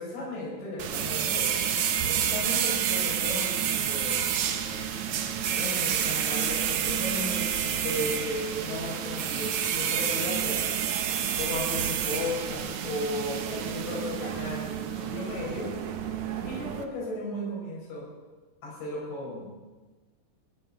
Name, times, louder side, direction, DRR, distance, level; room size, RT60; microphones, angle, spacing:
voice 1, 0.0-1.7 2.1-4.2 5.5-10.6 11.2-15.7 16.4-18.1 18.6-19.5, left 1 dB, 80° left, -5 dB, 8.3 m, -35 dB
sound 1, 0.8-16.8, right 9 dB, 85° right, 1.6 m, -29 dB
21.5 x 17.0 x 4.0 m, 1.2 s
omnidirectional pair, 5.0 m